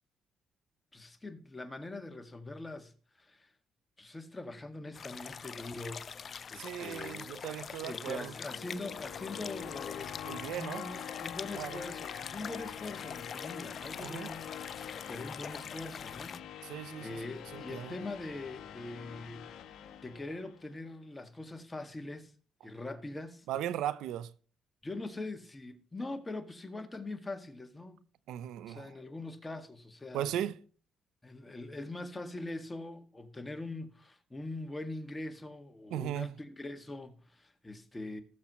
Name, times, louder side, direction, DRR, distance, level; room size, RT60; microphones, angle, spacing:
voice 1, 0.9-2.9 3.2-3.5 4.0-6.1 6.5-7.3 7.8-10.2 10.5-16.4 16.7-19.4 19.7-22.3 22.6-23.5 24.8-28.0 28.7-30.4 31.2-38.2, left 2 dB, 15° left, 2.0 m, -42 dB
sound 1, 4.9-16.4, left 6 dB, 50° left, 0.6 m, -44 dB
voice 2, 6.5-8.3 10.2-10.9 11.5-11.8 14.0-14.3 16.6-17.2 17.5-18.0 23.5-24.3 28.3-28.9 30.1-30.6 35.9-36.3, right 11 dB, 90° right, 0.7 m, -37 dB
sound 2, 7.8-20.8, left 10 dB, 80° left, 1.1 m, -45 dB
19.0 x 7.4 x 3.1 m
cardioid pair, 90°, 0 cm